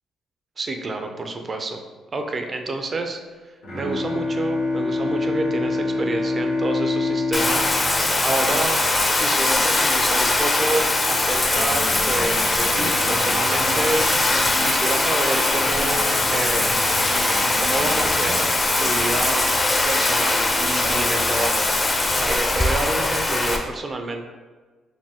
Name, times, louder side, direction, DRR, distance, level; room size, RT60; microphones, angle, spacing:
voice 1, 0.6-1.8 2.1-3.2 3.4-8.8 9.2-16.8 17.6-19.5 19.8-24.3, right 2 dB, 35° right, 5 dB, 0.4 m, -29 dB
Bowed string instrument, 3.6-9.3, left 2 dB, 85° left, 1.3 m, -26 dB
Bathtub (filling or washing), 7.3-23.6, left 2 dB, 25° left, 0.5 m, -21 dB
sound 1, 11.4-14.8 15.7-18.5, right 1 dB, 85° right, 1.1 m, -33 dB
4.2 x 2.2 x 3.5 m, 1.4 s
cardioid pair, 90°, 0 cm